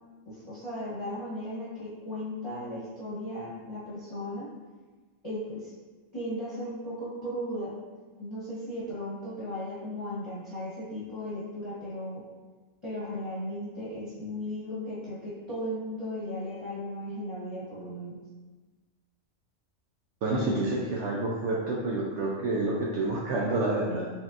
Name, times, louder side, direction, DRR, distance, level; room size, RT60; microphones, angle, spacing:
voice 1, 0.2-4.5 5.2-5.7 6.1-7.8 8.2-12.2 12.8-18.2, equal, 25° left, -10 dB, 1.0 m, -36 dB
voice 2, 20.2-24.1, right 2 dB, 70° right, -3 dB, 0.9 m, -28 dB
4.9 x 3.5 x 2.5 m, 1.3 s
omnidirectional pair, 1.3 m